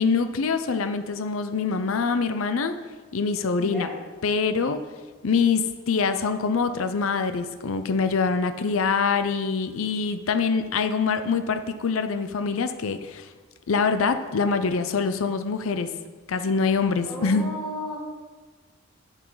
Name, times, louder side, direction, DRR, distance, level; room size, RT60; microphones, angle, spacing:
voice 1, 0.0-2.8 3.1-3.9 4.2-4.8 5.2-13.3 13.7-15.9 16.3-17.5, left 5 dB, 80° left, 10 dB, 0.5 m, -24 dB
voice 2, 3.6-4.0 17.0-18.0, equal, ahead, -5 dB, 1.9 m, -34 dB
10.0 x 8.1 x 3.9 m, 1.4 s
head